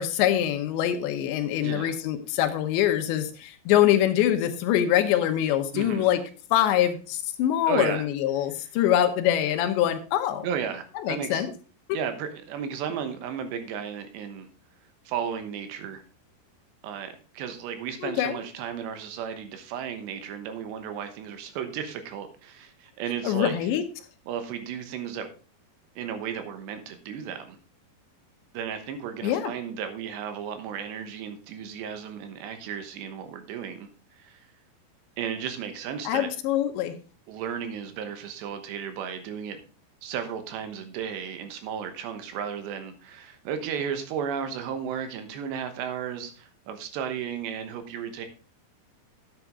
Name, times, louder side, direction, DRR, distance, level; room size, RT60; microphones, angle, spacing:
voice 1, 0.0-6.2 6.5-10.5 11.0-11.5 18.0-18.4 23.2-23.8 29.2-29.5 36.1-37.0, left 11 dB, 90° left, 8 dB, 3.2 m, -24 dB
voice 2, 1.6-2.0 5.7-6.1 7.7-8.1 10.4-11.5 11.9-14.5 15.1-16.0 16.8-23.6 24.3-25.3 26.0-27.6 28.5-33.9 34.1-34.5 35.2-36.3 37.3-39.6 40.0-48.3, right 8 dB, 80° right, 8 dB, 3.3 m, -34 dB
10.5 x 8.1 x 3.6 m, 0.36 s
omnidirectional pair, 5.0 m